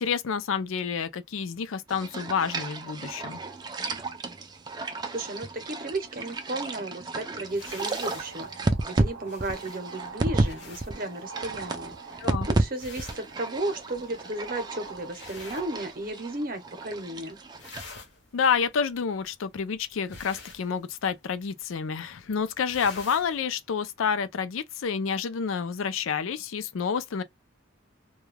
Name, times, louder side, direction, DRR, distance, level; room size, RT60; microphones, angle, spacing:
voice 1, 0.0-3.4 12.2-12.5 18.3-27.2, left 6 dB, 80° left, 0.4 m, -29 dB
sound 1, 1.9-10.5 10.8-12.6 13.0-17.8, right 2 dB, 20° right, 0.4 m, -32 dB
voice 2, 4.8-17.4, right 2 dB, 45° right, 0.7 m, -34 dB
sound 2, 7.5-16.4 16.7-17.2 17.4-23.4, left 4 dB, 55° left, 0.8 m, -48 dB
sound 3, 8.0-15.1, right 5 dB, 80° right, 0.5 m, -45 dB
2.3 x 2.2 x 3.1 m
head